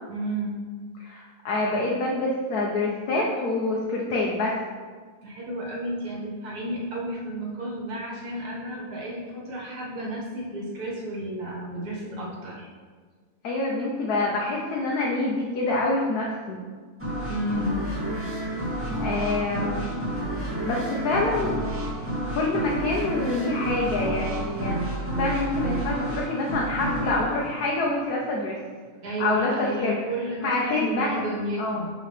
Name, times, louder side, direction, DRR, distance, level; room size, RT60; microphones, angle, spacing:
voice 1, 0.1-0.6 5.2-12.7 17.3-17.9 29.0-31.9, right 1 dB, 80° right, -3 dB, 2.0 m, -32 dB
voice 2, 1.0-4.6 13.4-16.6 19.0-20.1 20.6-21.5 22.3-24.9 25.2-28.6 29.2-30.0 30.4-31.2 31.6-31.8, left 2 dB, 75° left, -3 dB, 1.3 m, -26 dB
sound 1, 17.0-28.5, right 1 dB, 10° right, 1.7 m, -30 dB
11.0 x 3.9 x 3.3 m, 1.5 s
omnidirectional pair, 1.7 m